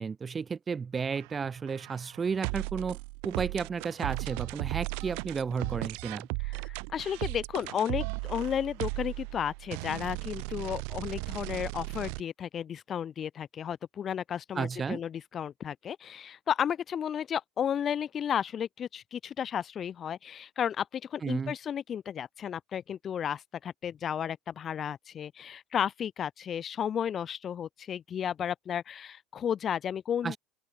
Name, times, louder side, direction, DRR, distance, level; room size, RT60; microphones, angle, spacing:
voice 1, 0.0-3.0 3.2-6.3 14.5-15.0 21.2-21.5 30.2-30.4, right 5 dB, 20° right, 0.9 m, -33 dB
sound 1, 1.0-12.2, right 40 dB or more, 70° right, 2.2 m, -36 dB
voice 2, 6.4-30.4, left 8 dB, 30° left, 0.6 m, -33 dB
open air
cardioid pair, 145°, 0 cm